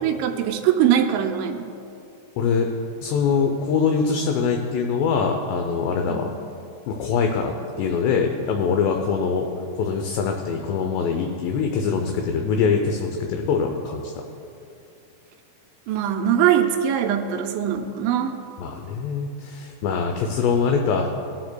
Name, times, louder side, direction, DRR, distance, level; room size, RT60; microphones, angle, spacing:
voice 1, 0.0-1.7 6.1-6.3 15.9-18.3, right 9 dB, 85° right, 5 dB, 2.8 m, -22 dB
voice 2, 2.4-2.7 3.0-6.3 6.9-9.5 9.7-14.1 18.6-21.1, left 5 dB, 80° left, 3 dB, 2.6 m, -23 dB
18.0 x 12.0 x 2.2 m, 2.6 s
omnidirectional pair, 5.4 m